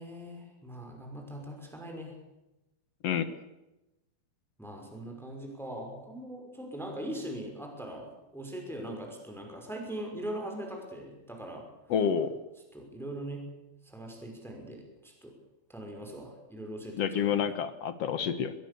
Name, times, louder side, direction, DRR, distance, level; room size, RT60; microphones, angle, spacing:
voice 1, 0.0-2.2 4.6-11.7 12.7-13.5 13.8-15.3 15.7-17.5, right 1 dB, ahead, 2 dB, 5.4 m, -41 dB
voice 2, 11.9-12.4 17.0-18.5, left 8 dB, 65° left, 11 dB, 1.5 m, -28 dB
25.5 x 21.0 x 7.0 m, 0.98 s
omnidirectional pair, 4.4 m